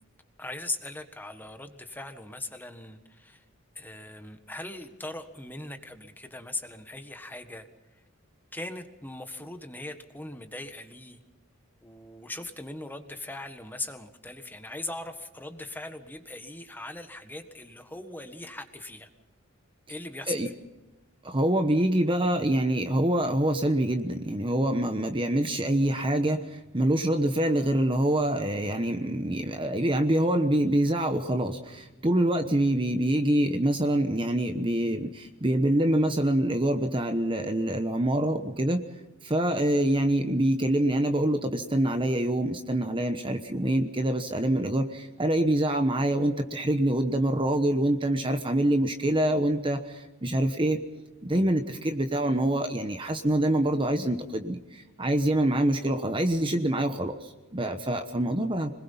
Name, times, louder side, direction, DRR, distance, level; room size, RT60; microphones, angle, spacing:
voice 1, 0.4-3.4 3.7-7.7 8.5-11.2 11.8-19.1 19.9-20.3, left 2 dB, 10° left, 7 dB, 1.5 m, -39 dB
voice 2, 21.2-38.8 39.2-50.8 51.2-58.7, right 1 dB, 25° right, 7 dB, 1.1 m, -25 dB
26.0 x 20.5 x 5.6 m, 1.1 s
head